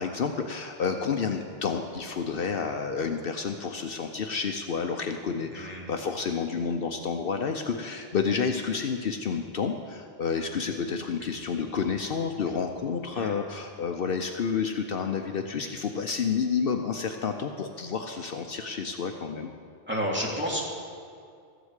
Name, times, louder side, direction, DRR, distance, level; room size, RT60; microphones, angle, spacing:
voice 1, 0.0-19.5, left 5 dB, 65° left, 5 dB, 0.9 m, -30 dB
voice 2, 5.5-5.9 13.1-13.3 19.9-20.6, equal, 10° right, -4 dB, 2.6 m, -30 dB
14.0 x 7.9 x 8.1 m, 2.3 s
omnidirectional pair, 1.1 m